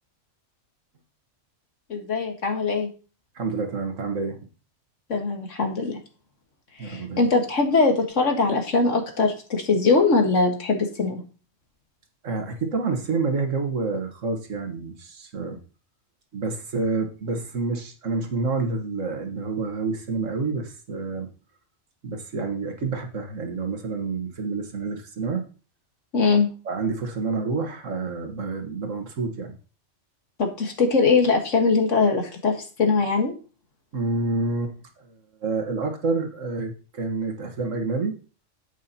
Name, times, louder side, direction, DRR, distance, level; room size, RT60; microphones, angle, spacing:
voice 1, 1.9-2.9 5.1-6.0 6.8-11.2 26.1-26.5 30.4-33.3, left 4 dB, 80° left, 3 dB, 1.9 m, -21 dB
voice 2, 3.4-4.5 6.8-7.2 12.2-15.6 16.3-21.3 22.0-25.5 26.7-29.6 33.9-34.7 35.0-35.1 35.4-38.2, right 3 dB, 85° right, 5 dB, 1.8 m, -28 dB
9.2 x 8.4 x 2.8 m, 0.36 s
omnidirectional pair, 1.3 m